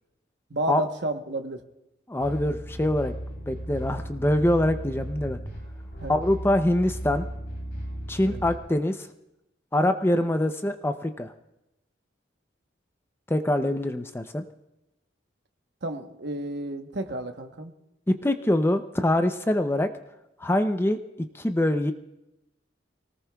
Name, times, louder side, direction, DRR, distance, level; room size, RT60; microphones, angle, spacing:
voice 1, 0.5-1.6 6.0-6.2 8.2-8.4 15.8-17.7, right 1 dB, 65° right, 5 dB, 1.0 m, -31 dB
voice 2, 2.1-3.1 3.5-5.4 6.1-7.2 8.1-9.1 9.7-11.3 13.3-14.4 18.1-19.9 20.4-21.0 21.3-21.9, left 1 dB, 10° left, 8 dB, 0.5 m, -24 dB
sound 1, 2.2-8.6, right 1 dB, 70° left, 3.4 m, -36 dB
24.5 x 19.0 x 2.3 m, 0.91 s
head